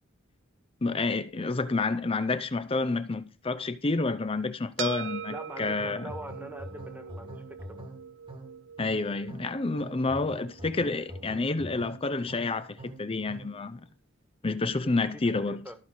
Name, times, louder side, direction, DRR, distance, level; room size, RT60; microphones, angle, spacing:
voice 1, 0.8-6.1 8.8-13.8 14.4-15.7, left 3 dB, 30° left, 0.6 m, -29 dB
sound 1, 4.8-13.4, right 8 dB, 65° right, 0.5 m, -43 dB
voice 2, 5.3-7.8 14.8-15.8, right 1 dB, 10° right, 1.6 m, -44 dB
sound 2, 5.8-13.6, equal, 25° right, 1.7 m, -44 dB
14.0 x 5.6 x 6.4 m
head